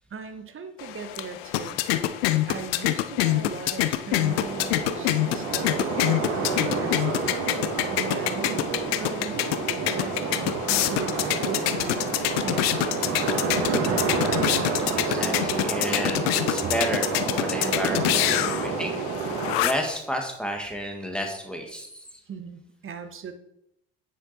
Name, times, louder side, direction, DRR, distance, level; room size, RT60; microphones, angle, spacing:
voice 1, 0.1-1.8 2.1-2.2 2.5-7.3 7.9-12.1 12.4-13.7 22.3-23.3, right 5 dB, 40° right, 8 dB, 1.4 m, -39 dB
sound 1, 0.8-20.0, left 14 dB, 75° left, 0.7 m, -27 dB
sound 2, 4.1-19.6, right 4 dB, 60° right, 1.8 m, -29 dB
voice 2, 14.5-18.9 19.6-22.0, equal, 5° left, 2 dB, 2.1 m, -31 dB
9.7 x 6.5 x 4.4 m, 0.78 s
hypercardioid pair, 55°, 31 cm